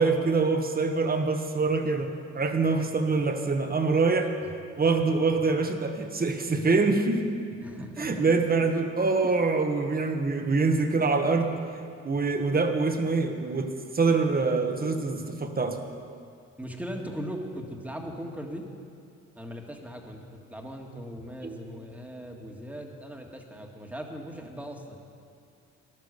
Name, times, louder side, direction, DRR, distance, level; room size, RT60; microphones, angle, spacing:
voice 1, 0.0-4.3 4.8-7.3 8.0-11.5 12.0-15.8 21.4-21.6, right 3 dB, 30° right, 6 dB, 1.4 m, -25 dB
voice 2, 7.6-8.3 9.2-9.4 11.2-11.6 16.6-18.7 19.4-25.0, equal, 5° right, 1 dB, 1.8 m, -39 dB
14.0 x 11.5 x 6.8 m, 2.3 s
cardioid pair, 90°, 30 cm